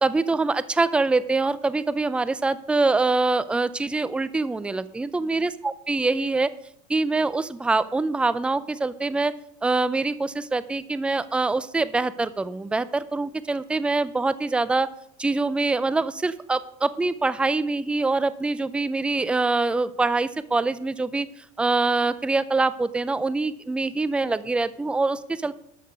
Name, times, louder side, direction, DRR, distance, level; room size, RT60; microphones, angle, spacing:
voice 1, 0.0-6.5 6.9-9.3 9.6-14.9 15.2-21.3 21.6-25.5, right 3 dB, 5° right, 16 dB, 0.5 m, -24 dB
12.5 x 6.5 x 5.2 m, 0.73 s
supercardioid pair, 120°, 16 cm